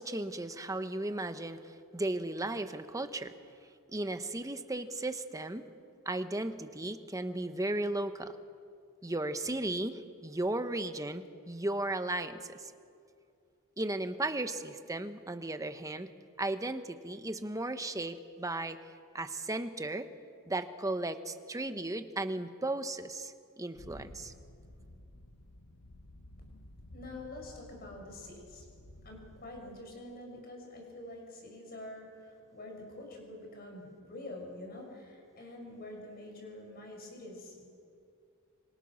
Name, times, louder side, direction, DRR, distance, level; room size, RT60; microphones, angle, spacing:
voice 1, 0.0-3.3 3.9-5.7 6.0-8.3 9.0-12.7 13.8-16.1 16.4-18.8 19.1-20.1 20.5-24.3, right 2 dB, 15° right, 9 dB, 1.0 m, -35 dB
sound 1, 23.7-30.1, left 1 dB, 85° left, 1.3 m, -54 dB
voice 2, 26.9-28.6 29.0-37.7, left 1 dB, 45° left, 1 dB, 6.2 m, -46 dB
26.0 x 25.5 x 6.4 m, 2.4 s
head